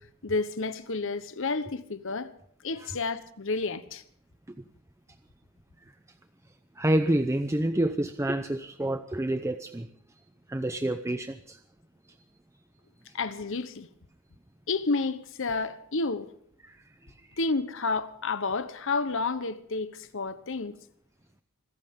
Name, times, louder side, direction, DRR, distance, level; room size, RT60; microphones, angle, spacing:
voice 1, 0.2-2.3 2.6-4.0 13.1-13.9 14.7-16.3 17.4-20.8, left 3 dB, 65° left, 1.0 m, -30 dB
voice 2, 6.8-9.9 10.5-11.6 16.6-16.8, right 1 dB, 15° right, 0.6 m, -28 dB
25.5 x 14.5 x 3.7 m
head